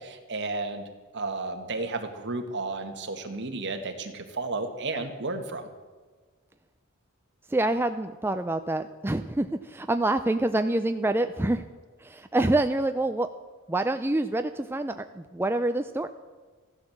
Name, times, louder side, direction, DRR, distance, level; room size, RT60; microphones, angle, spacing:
voice 1, 0.0-5.7, right 3 dB, 55° right, 6 dB, 1.8 m, -33 dB
voice 2, 7.5-11.6 12.0-13.3 13.7-16.1, right 2 dB, 10° right, 8 dB, 0.4 m, -26 dB
15.0 x 11.5 x 7.3 m, 1.4 s
head